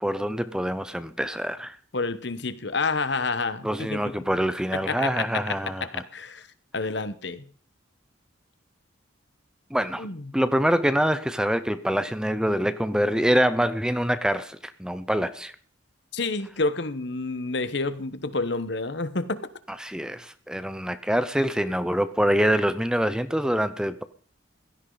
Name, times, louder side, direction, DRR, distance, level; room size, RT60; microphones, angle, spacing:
voice 1, 0.0-1.8 3.6-6.0 9.7-10.1 10.3-15.5 19.8-24.0, equal, 5° right, 0.6 m, -25 dB
voice 2, 1.9-4.0 4.9-6.5 6.7-7.5 10.0-10.3 16.1-19.5, left 3 dB, 60° left, 1.1 m, -29 dB
16.0 x 13.5 x 4.0 m
head